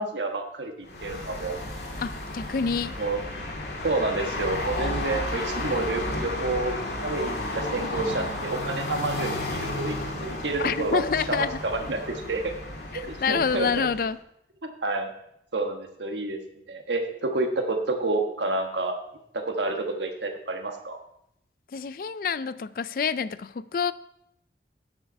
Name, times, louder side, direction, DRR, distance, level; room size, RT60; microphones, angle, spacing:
voice 1, 0.0-1.6 3.0-3.2 3.8-6.7 7.0-12.5 12.9-13.9 14.8-15.1 15.5-16.4 16.7-19.0 19.3-21.0, right 2 dB, 90° right, 4 dB, 1.3 m, -29 dB
sound 1, 0.8-14.1, left 1 dB, 75° left, 2.0 m, -33 dB
voice 2, 2.0-3.0 10.6-11.6 12.9-14.2 21.7-23.9, left 6 dB, 50° left, 16 dB, 0.4 m, -27 dB
9.1 x 7.1 x 5.4 m, 0.76 s
head